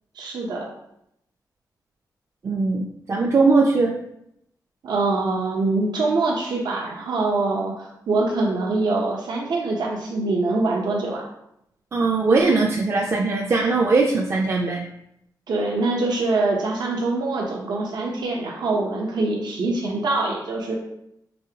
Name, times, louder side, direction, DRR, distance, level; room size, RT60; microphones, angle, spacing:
voice 1, 0.1-0.7 4.8-11.2 15.5-20.8, right 3 dB, 75° right, -1 dB, 0.7 m, -24 dB
voice 2, 2.4-3.9 11.9-14.8, right 3 dB, 40° right, 0 dB, 0.4 m, -20 dB
5.3 x 3.3 x 2.8 m, 0.79 s
wide cardioid pair, 155°, 7 cm